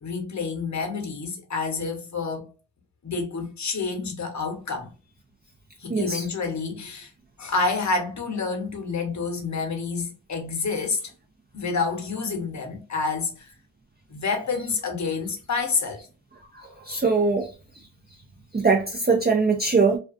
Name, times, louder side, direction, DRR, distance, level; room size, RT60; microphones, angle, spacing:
voice 1, 0.0-2.5 3.0-4.9 5.8-7.1 7.4-11.1 11.5-13.5 14.1-16.0, left 4 dB, 40° left, 1.0 m, -28 dB
voice 2, 5.9-6.3 16.5-17.5 18.5-20.0, right 4 dB, 25° right, 0.5 m, -22 dB
2.5 x 2.3 x 2.4 m
cardioid pair, 50°, 42 cm